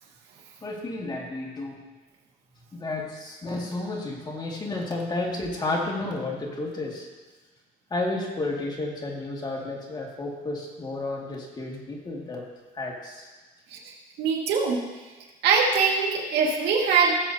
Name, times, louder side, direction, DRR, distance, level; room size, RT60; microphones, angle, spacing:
voice 1, 0.6-1.8 2.7-7.1 7.9-12.5 12.7-13.3, left 2 dB, 25° left, -2 dB, 2.2 m, -32 dB
voice 2, 14.2-14.8 15.4-17.1, right 5 dB, 80° right, -2 dB, 2.0 m, -22 dB
17.5 x 7.6 x 2.8 m, 1.3 s
cardioid pair, 110°, 17 cm